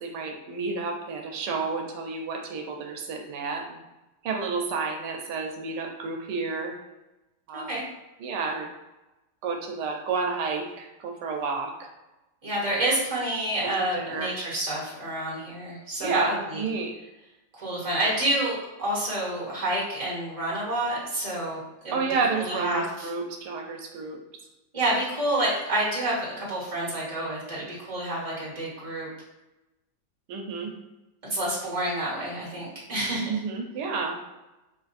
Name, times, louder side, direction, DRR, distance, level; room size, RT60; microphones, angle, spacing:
voice 1, 0.0-3.8 4.2-6.7 7.5-7.7 8.2-8.7 9.4-11.9 13.6-14.4 16.0-16.9 21.9-24.2 30.3-30.7 33.3-34.2, right 4 dB, 85° right, 2 dB, 1.2 m, -30 dB
voice 2, 7.5-7.8 12.4-16.7 17.5-22.0 22.3-23.1 24.7-29.1 31.3-33.3, right 1 dB, 20° right, -6 dB, 1.4 m, -28 dB
3.6 x 2.5 x 4.0 m, 1.0 s
omnidirectional pair, 1.8 m